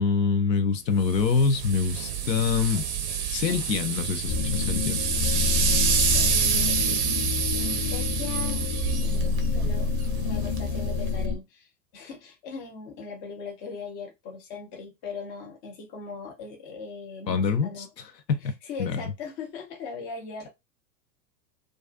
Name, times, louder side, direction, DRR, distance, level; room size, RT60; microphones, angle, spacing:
voice 1, 0.0-2.8 3.3-5.0 5.9-6.0 6.8-7.0 17.3-17.8 18.3-18.5 18.8-19.1, left 5 dB, 85° left, 0.6 m, -25 dB
sound 1, 1.0-11.3, right 7 dB, 45° right, 0.5 m, -28 dB
sound 2, 4.3-11.4, left 6 dB, 55° left, 0.8 m, -28 dB
voice 2, 6.1-6.8 7.5-8.6 9.0-9.9 10.2-17.9 18.4-20.5, left 5 dB, 20° left, 0.3 m, -39 dB
2.3 x 2.3 x 2.3 m
figure-of-eight pair, 95°, 49 cm